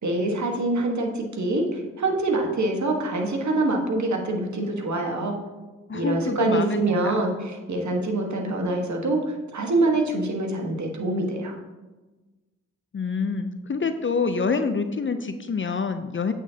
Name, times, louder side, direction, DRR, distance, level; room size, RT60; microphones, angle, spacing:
voice 1, 0.0-5.3 5.9-11.6, right 2 dB, 55° right, 2 dB, 1.5 m, -25 dB
voice 2, 5.9-7.3 12.9-16.3, left 5 dB, 35° left, 9 dB, 0.6 m, -26 dB
8.1 x 7.0 x 2.8 m, 1.2 s
supercardioid pair, 40°, 34 cm